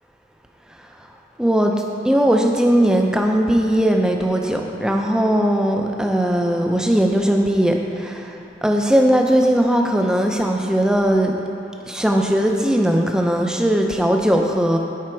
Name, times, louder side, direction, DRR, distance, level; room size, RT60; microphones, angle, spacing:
voice 1, 1.4-1.7 2.1-8.2 8.6-11.3 11.9-14.8, equal, 5° right, 2 dB, 0.4 m, -18 dB
7.5 x 5.0 x 4.6 m, 3.0 s
head